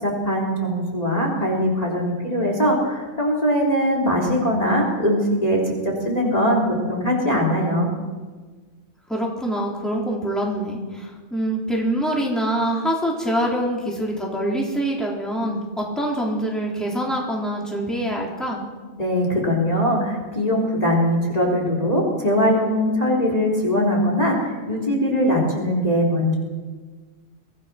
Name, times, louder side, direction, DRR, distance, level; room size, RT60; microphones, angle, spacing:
voice 1, 0.0-6.6 6.9-7.9 19.0-26.3, equal, 25° left, -1 dB, 3.9 m, -21 dB
voice 2, 9.1-18.6, right 1 dB, ahead, -3 dB, 4.2 m, -25 dB
24.0 x 18.0 x 6.2 m, 1.4 s
omnidirectional pair, 1.5 m